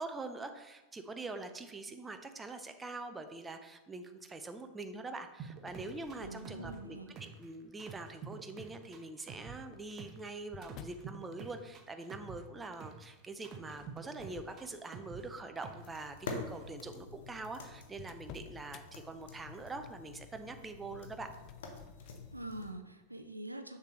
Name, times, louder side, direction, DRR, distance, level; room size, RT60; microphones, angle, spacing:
voice 1, 0.0-21.3, right 3 dB, 15° right, 7 dB, 0.6 m, -44 dB
sound 1, 5.4-7.5 7.8-10.3 10.6-13.1 13.4-15.9 16.3-16.6, right 6 dB, 30° right, 0.9 m, -48 dB
sound 2, 5.6-7.0 7.7-8.1 9.2-11.1 13.6-15.2 15.6-15.9 16.6-16.7 16.9-17.0 17.4-18.9 21.0-22.3, left 8 dB, 35° left, 0.4 m, -54 dB
voice 2, 6.2-7.2 22.0-23.8, right 1 dB, 85° right, 7 dB, 0.5 m, -45 dB
sound 3, 15.7-22.7, left 4 dB, 55° left, 1.0 m, -47 dB
6.7 x 6.6 x 3.1 m, 1.1 s
figure-of-eight pair, 90°, 0 cm